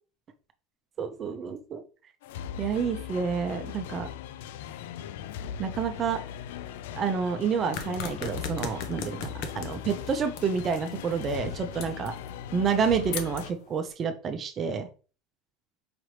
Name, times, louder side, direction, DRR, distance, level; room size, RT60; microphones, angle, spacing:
voice 1, 1.0-1.8 2.6-4.1 5.6-6.2 6.9-12.1 12.5-14.9, right 6 dB, 30° right, 7 dB, 0.6 m, -29 dB
sound 1, 2.2-13.5, left 9 dB, 85° left, 0.3 m, -39 dB
sound 2, 7.7-13.9, left 5 dB, 60° left, 0.7 m, -40 dB
4.9 x 2.9 x 3.2 m, 0.35 s
supercardioid pair, 135°, 0 cm